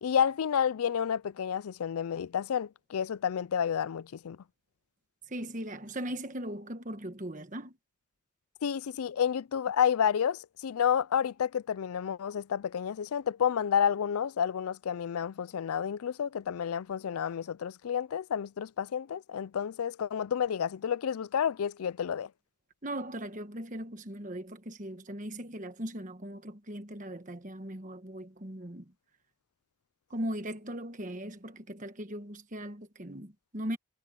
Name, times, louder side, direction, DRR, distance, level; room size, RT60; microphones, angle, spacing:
voice 1, 0.0-4.4 8.6-22.3, left 8 dB, 90° left, 0.4 m, -30 dB
voice 2, 5.3-7.8 22.8-28.9 30.1-33.8, right 1 dB, 35° right, 1.4 m, -39 dB
head